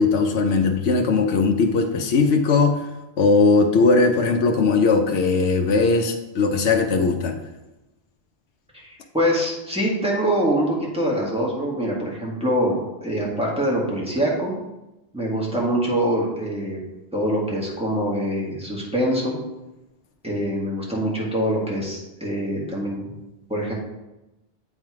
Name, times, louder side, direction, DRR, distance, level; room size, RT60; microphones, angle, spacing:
voice 1, 0.0-2.9 3.2-7.4, left 4 dB, 85° left, 4 dB, 1.0 m, -19 dB
voice 2, 8.7-14.5 15.1-16.8 17.1-19.4 20.2-23.0 23.5-23.7, equal, 5° right, -5 dB, 1.7 m, -24 dB
8.0 x 3.6 x 4.7 m, 0.97 s
omnidirectional pair, 1.1 m